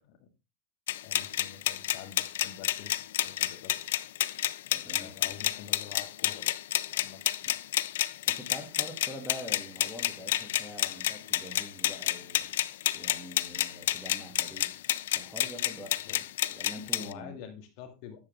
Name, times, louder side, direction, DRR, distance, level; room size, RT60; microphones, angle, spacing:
sound 1, 0.9-17.1, left 13 dB, 80° left, 0.5 m, -30 dB
voice 1, 1.0-2.9 3.2-3.8 4.9-6.6 6.9-7.5 16.0-16.2 17.0-18.2, left 8 dB, 55° left, 6 dB, 2.1 m, -47 dB
voice 2, 4.7-5.3 8.3-12.5 12.9-14.7 15.1-16.2 16.5-17.4, equal, 5° right, 3 dB, 2.7 m, -45 dB
9.9 x 7.4 x 3.6 m, 0.26 s
supercardioid pair, 140°, 0 cm